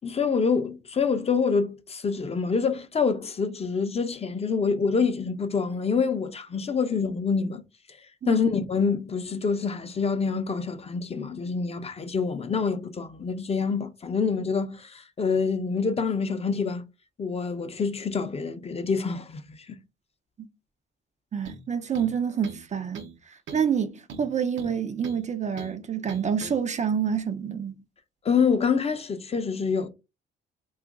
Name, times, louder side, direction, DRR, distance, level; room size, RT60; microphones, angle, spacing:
voice 1, 0.0-7.6 8.3-16.8 17.2-19.4 19.7-19.8 28.2-29.9, left 5 dB, 30° left, 0.6 m, -26 dB
voice 2, 21.3-23.1 23.5-27.8, right 7 dB, 35° right, 0.5 m, -27 dB
sound 1, 21.5-21.7 22.0-22.7 23.0-23.2 23.5-23.7 24.1-25.2 25.6-25.8 26.1-26.6, right 5 dB, 75° right, 0.8 m, -41 dB
2.7 x 2.4 x 3.7 m
cardioid pair, 90°, 20 cm